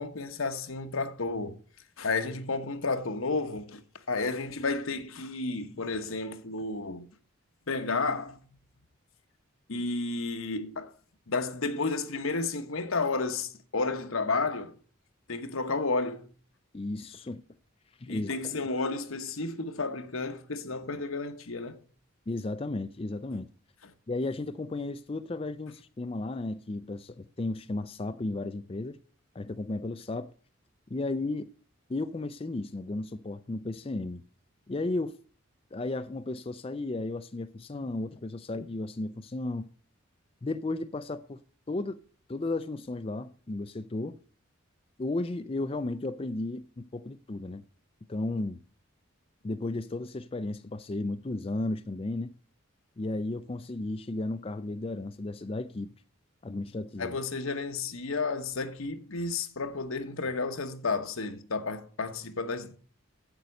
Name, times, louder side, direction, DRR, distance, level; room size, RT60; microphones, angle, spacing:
voice 1, 0.0-1.6 2.0-3.8 4.1-7.1 7.7-8.4 9.7-10.9 11.3-14.7 15.3-16.3 18.1-21.8 57.0-62.8, left 3 dB, 80° left, 1.1 m, -32 dB
voice 2, 16.7-17.4 18.0-18.6 22.3-23.5 24.1-29.0 29.3-30.3 30.9-31.5 31.9-34.2 34.7-35.1 35.7-39.7 40.4-41.4 41.7-42.0 42.3-44.2 45.0-47.6 48.1-48.6 49.4-52.3 53.0-55.9 56.4-57.2, left 2 dB, 25° left, 0.4 m, -34 dB
9.0 x 8.2 x 6.5 m
head